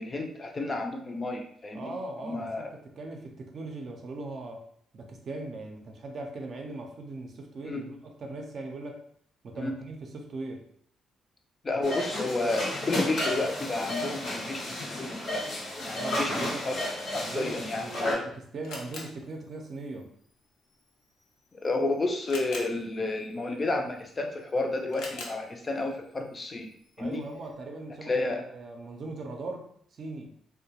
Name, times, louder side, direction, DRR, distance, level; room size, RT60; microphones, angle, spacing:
voice 1, 0.0-1.9 2.2-2.7 7.6-7.8 9.5-9.7 11.6-15.4 15.8-16.9 17.1-17.9 21.6-26.7 27.0-27.2 28.1-28.5, left 2 dB, 30° left, 3 dB, 0.4 m, -31 dB
voice 2, 1.7-4.6 4.9-9.0 9.4-10.7 15.9-16.7 17.2-20.1 27.0-30.3, right 2 dB, 50° right, 3 dB, 0.5 m, -39 dB
sound 1, 11.8-18.1, left 1 dB, 70° left, 1.1 m, -32 dB
Camera, 18.2-27.5, left 2 dB, 90° left, 0.5 m, -48 dB
2.3 x 2.1 x 2.8 m, 0.64 s
cardioid pair, 90°, 0 cm